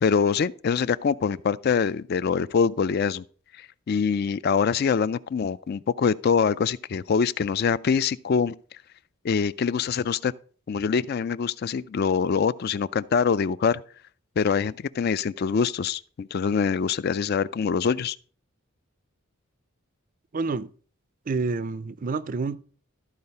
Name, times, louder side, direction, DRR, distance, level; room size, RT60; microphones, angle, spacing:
voice 1, 0.0-3.2 3.6-8.6 9.2-10.3 10.7-13.8 14.4-18.2, left 6 dB, 45° left, 0.3 m, -24 dB
voice 2, 20.3-20.7 21.3-22.6, right 4 dB, 40° right, 0.4 m, -28 dB
13.0 x 4.7 x 5.4 m
head